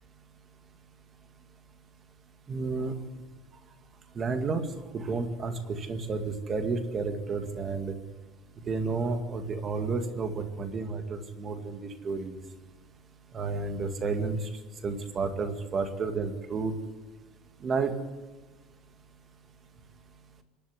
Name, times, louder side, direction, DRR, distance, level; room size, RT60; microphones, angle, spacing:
voice 1, 2.5-2.9 4.2-4.6 4.9-7.9 8.7-12.4 13.3-14.5 14.8-16.7 17.6-17.9, right 4 dB, 25° right, 7 dB, 2.0 m, -31 dB
26.0 x 11.5 x 9.7 m, 1.3 s
cardioid pair, 180°, 0 cm